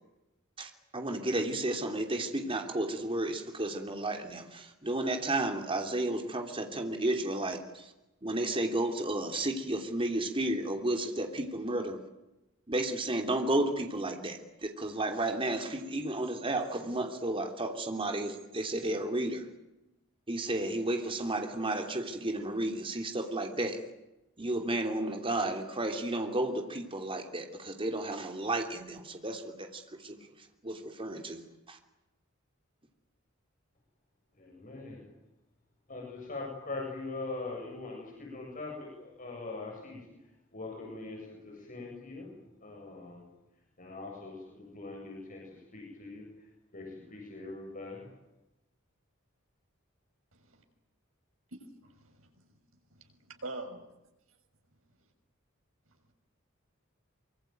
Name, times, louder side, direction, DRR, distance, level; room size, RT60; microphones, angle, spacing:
voice 1, 0.6-7.9 8.2-12.0 12.7-19.4 20.3-23.8 24.4-30.2 30.6-31.4 31.7-31.8, right 1 dB, 25° right, 4 dB, 3.1 m, -32 dB
voice 2, 34.4-35.0 35.9-40.1 40.5-42.3 42.6-43.2 43.8-46.3 46.7-48.1, left 3 dB, 40° left, -1 dB, 7.8 m, -42 dB
voice 3, 50.3-50.6 51.8-52.3 52.9-53.9, right 2 dB, 80° right, 5 dB, 6.1 m, -44 dB
25.0 x 24.5 x 9.4 m, 0.96 s
head